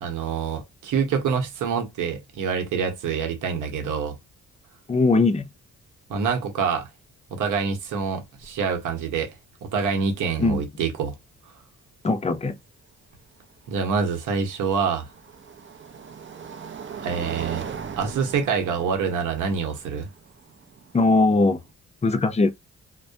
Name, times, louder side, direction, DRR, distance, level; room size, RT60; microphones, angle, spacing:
voice 1, 0.0-4.2 6.1-6.9 7.3-9.3 9.6-11.1 13.7-15.1 17.0-17.7 18.0-20.1, right 6 dB, 85° right, 0.9 m, -26 dB
voice 2, 4.9-5.4 10.4-10.6 12.0-12.6 20.9-21.6 22.0-22.5, left 3 dB, 20° left, 0.5 m, -20 dB
sound 1, 7.8-7.9 8.2-8.6 10.5-10.6 13.6-21.7, right 6 dB, 40° right, 0.6 m, -39 dB
2.2 x 2.1 x 2.7 m
cardioid pair, 75°, 30 cm